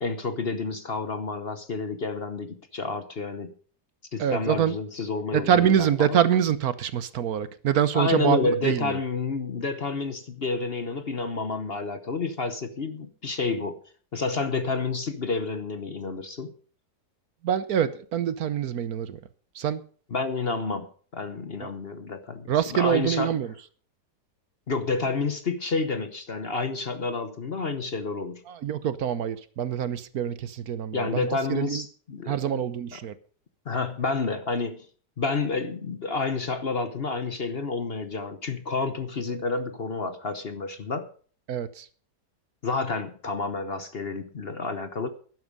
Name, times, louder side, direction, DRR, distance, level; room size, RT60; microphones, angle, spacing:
voice 1, 0.0-3.5 4.1-6.2 7.9-13.8 14.1-16.5 20.1-20.9 21.1-23.4 24.7-28.4 30.9-32.6 33.7-34.9 35.2-41.1 42.6-45.1, left 4 dB, 40° left, 1.1 m, -29 dB
voice 2, 4.2-4.8 5.3-9.0 17.4-19.2 19.5-19.8 21.6-21.7 22.5-23.5 28.5-31.8 32.3-33.1 41.5-41.9, right 9 dB, 65° right, 1.3 m, -25 dB
12.5 x 11.0 x 5.4 m
omnidirectional pair, 1.8 m